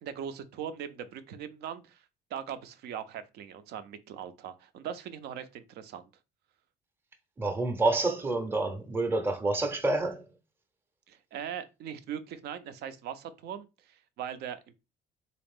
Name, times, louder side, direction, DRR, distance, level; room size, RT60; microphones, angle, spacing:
voice 1, 0.0-2.0 2.3-6.0 11.1-14.7, right 8 dB, 75° right, 0.6 m, -40 dB
voice 2, 7.4-10.3, right 2 dB, 15° right, 0.6 m, -28 dB
3.9 x 2.4 x 3.5 m
cardioid pair, 110°, 17 cm